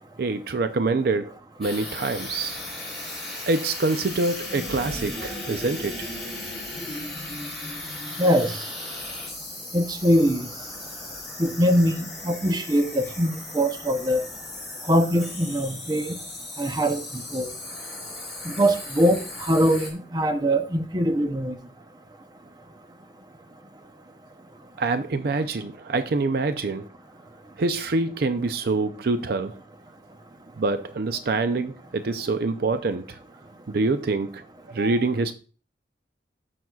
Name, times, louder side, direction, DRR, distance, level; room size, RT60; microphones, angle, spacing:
voice 1, 0.2-1.3 1.6-2.6 3.5-6.1 24.8-26.9 27.6-29.5 30.6-33.2 33.7-34.4 34.7-35.3, right 3 dB, 60° right, 0.5 m, -25 dB
sound 1, 1.6-19.9, left 2 dB, ahead, 3.7 m, -37 dB
sound 2, 4.3-8.9, equal, 20° left, 2.1 m, -39 dB
voice 2, 8.2-8.6 9.7-10.5 11.4-14.2 14.9-16.2 16.6-17.5 18.4-21.5, equal, 20° right, 0.7 m, -22 dB
13.5 x 5.9 x 2.3 m
head